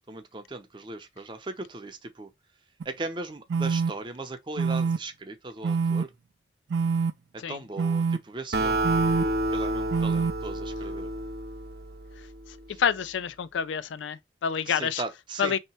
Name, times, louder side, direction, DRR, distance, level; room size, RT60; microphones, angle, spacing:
voice 1, 0.1-2.3 2.8-6.1 7.5-8.8 9.1-11.1 12.7-12.8 14.7-15.6, right 2 dB, 25° right, 0.6 m, -38 dB
sound 1, 2.8-2.9 3.5-3.9 4.6-5.0 5.6-6.0 6.7-7.1 7.8-8.2 8.8-9.2 9.9-10.3, right 5 dB, 80° right, 0.4 m, -25 dB
Acoustic guitar, 8.5-12.1, right 1 dB, 55° right, 0.8 m, -29 dB
voice 2, 12.8-15.0 15.4-15.6, left 7 dB, 85° left, 0.4 m, -28 dB
3.2 x 2.9 x 4.1 m
head